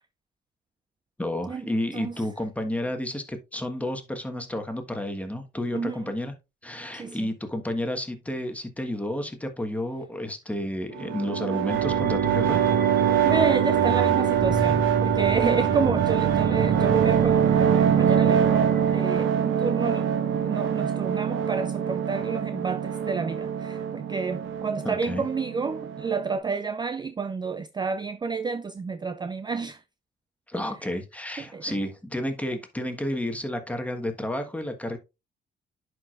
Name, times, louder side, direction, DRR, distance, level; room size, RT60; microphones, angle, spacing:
voice 1, 1.2-6.3 6.6-12.6 24.8-25.2 30.5-35.0, left 1 dB, 5° left, 1.3 m, -31 dB
voice 2, 5.7-6.1 6.9-7.3 13.2-20.1 20.4-29.8 31.4-31.8, right 5 dB, 20° right, 0.4 m, -30 dB
sound 1, 10.9-26.4, right 8 dB, 75° right, 1.1 m, -24 dB
sound 2, 11.7-19.0, right 5 dB, 50° right, 1.1 m, -31 dB
11.0 x 4.8 x 2.4 m
cardioid pair, 90°, 20 cm